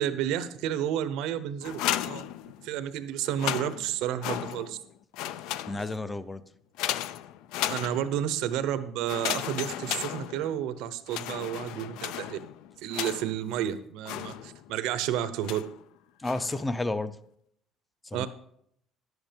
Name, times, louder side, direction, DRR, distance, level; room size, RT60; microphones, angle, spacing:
voice 1, 0.0-2.3 2.6-4.8 7.7-12.4 12.8-15.6 18.1-18.3, right 10 dB, 80° right, 12 dB, 0.9 m, -31 dB
sound 1, 1.6-2.9 3.3-4.9 5.1-6.1 6.8-8.3 9.1-10.7 11.1-13.5 14.1-14.8 15.4-15.8 16.2-16.7, left 12 dB, 80° left, 0.5 m, -35 dB
voice 2, 5.7-6.4 16.2-17.2 18.0-18.3, left 2 dB, 10° left, 15 dB, 0.5 m, -31 dB
11.0 x 8.1 x 5.2 m, 0.69 s
cardioid pair, 160°, 0 cm